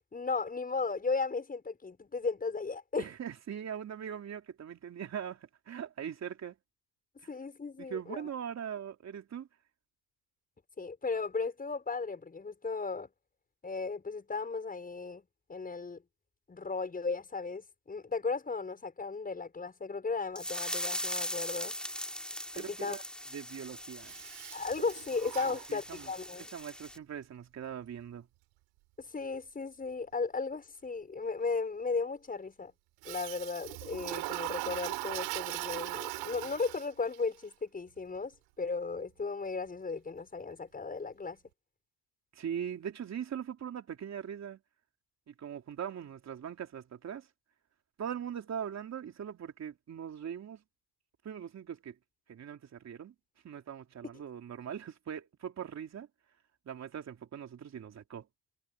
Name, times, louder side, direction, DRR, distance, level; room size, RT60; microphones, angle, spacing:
voice 1, 0.1-3.1 7.3-8.3 10.8-13.1 13.6-15.2 15.5-16.0 16.5-21.7 22.6-23.0 24.5-26.5 29.0-32.7 33.1-41.4, left 4 dB, 20° left, 6.9 m, -35 dB
voice 2, 3.0-6.5 7.8-9.5 22.5-23.0 23.3-24.1 25.7-26.1 26.5-28.3 42.3-44.6 45.3-47.3 48.0-50.6 51.2-52.0 52.3-53.1 53.4-56.1 56.6-58.3, right 8 dB, 40° right, 3.4 m, -41 dB
sound 1, 20.4-27.0, equal, ahead, 4.1 m, -40 dB
Toilet flush, 24.0-26.3 33.0-37.2, right 22 dB, 80° right, 4.9 m, -39 dB
cardioid pair, 115°, 42 cm